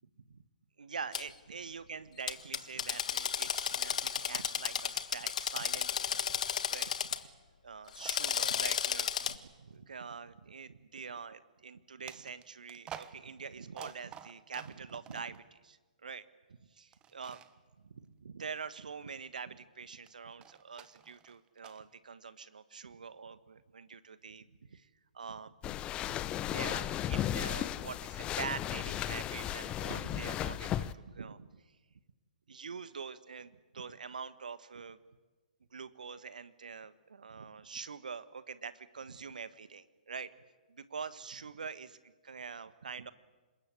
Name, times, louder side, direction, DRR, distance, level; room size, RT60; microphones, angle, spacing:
voice 1, 0.8-7.3 7.6-16.2 16.6-17.4 17.8-24.9 25.1-25.7 26.1-26.2 26.5-31.6 32.5-35.0 35.7-40.3 40.7-43.1, right 5 dB, 70° right, 14 dB, 1.4 m, -45 dB
Drill, 1.1-1.2 2.3-7.2 7.9-9.3, left 8 dB, 60° left, 1.4 m, -33 dB
sound 1, 3.3-4.0 4.2-5.2 5.7-7.2 8.0-9.1 9.7-9.8 12.1-15.4 16.9-17.5 20.1-21.8, right 9 dB, 20° right, 1.3 m, -51 dB
sound 2, 25.6-30.9, left 12 dB, 25° left, 0.8 m, -35 dB
27.0 x 22.5 x 8.6 m, 1.3 s
figure-of-eight pair, 120°, 4 cm